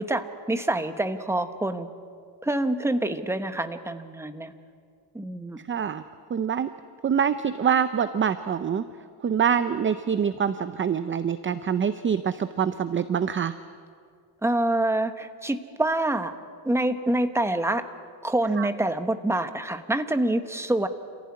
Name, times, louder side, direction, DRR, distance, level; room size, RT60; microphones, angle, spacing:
voice 1, 0.0-1.9 2.4-4.5 5.1-5.6 14.4-16.3 16.6-17.8 18.2-20.9, right 1 dB, 5° right, 8 dB, 1.0 m, -26 dB
voice 2, 5.7-6.0 6.3-6.7 7.0-8.8 9.2-13.5 18.6-18.7, right 7 dB, 25° right, 12 dB, 0.6 m, -25 dB
27.5 x 15.5 x 9.6 m, 2.2 s
cardioid pair, 145°, 48 cm